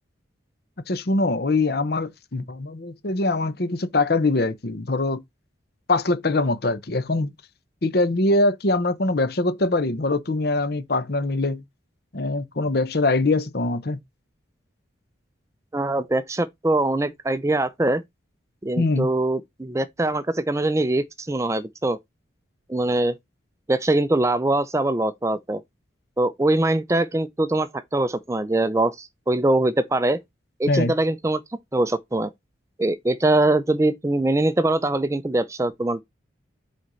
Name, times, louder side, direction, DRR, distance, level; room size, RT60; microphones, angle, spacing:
voice 1, 0.9-5.2 5.9-7.3 7.8-11.6 12.1-14.0 18.8-19.1 30.7-30.9, left 2 dB, 50° left, 0.8 m, -23 dB
voice 2, 15.7-18.0 18.6-22.0 22.7-23.1 23.7-25.6 26.2-30.2 30.6-31.4 31.7-32.3 32.8-36.0, right 2 dB, 15° right, 0.4 m, -22 dB
7.9 x 4.2 x 3.9 m
head